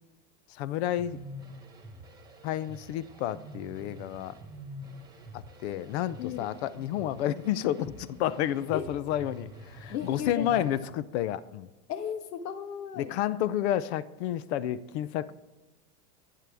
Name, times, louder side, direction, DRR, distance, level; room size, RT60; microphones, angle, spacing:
voice 1, 0.5-1.2 2.4-4.4 5.3-11.7 13.0-15.3, left 12 dB, 45° left, 18 dB, 0.6 m, -30 dB
sound 1, 0.8-10.8, equal, 10° right, 1.4 m, -47 dB
voice 2, 6.2-6.5 8.7-8.9 9.9-10.5 11.9-13.1, left 8 dB, 75° left, 9 dB, 1.6 m, -35 dB
23.5 x 9.3 x 3.4 m, 1.1 s
supercardioid pair, 150°, 48 cm